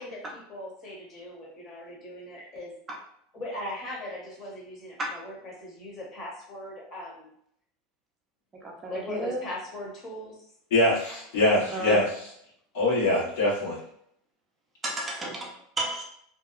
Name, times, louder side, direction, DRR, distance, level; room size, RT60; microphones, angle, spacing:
voice 1, 0.0-2.7 3.3-7.3 8.9-10.4, left 1 dB, 30° left, -3 dB, 0.9 m, -39 dB
voice 2, 8.6-9.4 11.5-12.0 14.8-16.0, right 2 dB, 15° right, -2 dB, 0.5 m, -33 dB
voice 3, 10.7-12.1 12.7-13.8, left 2 dB, 85° left, -6 dB, 1.3 m, -23 dB
2.7 x 2.1 x 2.4 m, 0.69 s
supercardioid pair, 155°, 0 cm